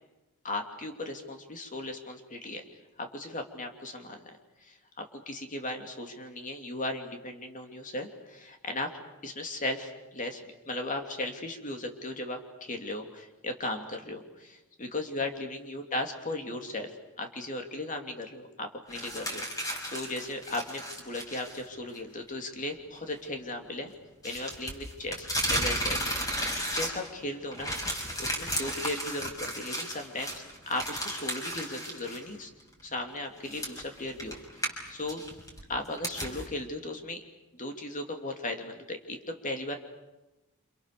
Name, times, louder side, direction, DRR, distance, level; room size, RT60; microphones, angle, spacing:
voice 1, 0.4-2.6 3.0-10.4 10.7-16.9 17.2-23.9 24.2-32.5 32.8-35.2 35.7-37.2 37.5-39.8, left 2 dB, 35° left, 4 dB, 2.9 m, -37 dB
sound 1, 18.9-21.6 21.9-22.0 24.2-27.2 27.5-32.2 32.6-32.7 33.4-36.4, equal, 15° left, 5.9 m, -34 dB
29.0 x 28.0 x 6.9 m, 1.0 s
head